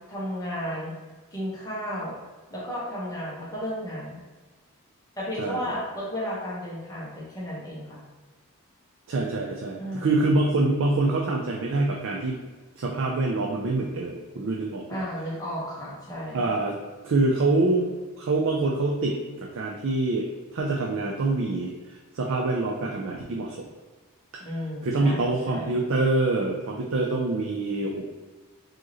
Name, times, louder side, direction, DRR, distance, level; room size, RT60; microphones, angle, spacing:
voice 1, 0.1-0.9 1.3-2.2 2.5-4.2 5.2-8.0 9.8-10.1 14.9-16.5 24.4-25.7, equal, 15° left, -6 dB, 1.2 m, -33 dB
voice 2, 5.4-5.7 9.1-12.4 12.8-15.0 16.3-16.8 17.0-20.3 20.5-23.7 24.3-24.5 24.8-28.1, right 2 dB, 60° right, 0 dB, 0.4 m, -25 dB
4.6 x 3.0 x 3.0 m, 1.3 s
head